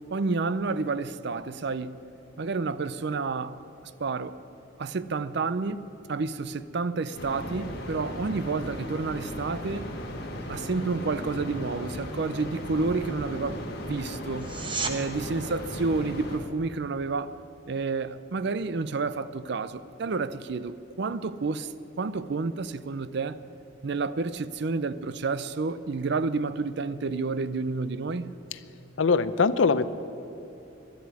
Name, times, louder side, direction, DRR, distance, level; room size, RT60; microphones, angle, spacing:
voice 1, 0.1-2.0 2.4-3.6 4.0-4.4 4.8-9.9 10.5-14.5 14.9-17.3 17.7-21.7 22.0-23.4 23.8-28.3, right 4 dB, 60° right, 0.5 m, -30 dB
sound 1, 7.1-16.4, left 1 dB, 55° left, 1.9 m, -37 dB
sound 2, 14.3-15.0 26.3-26.4, right 4 dB, 25° right, 1.0 m, -32 dB
voice 2, 29.0-29.9, left 4 dB, 75° left, 0.6 m, -22 dB
11.5 x 11.5 x 9.6 m
head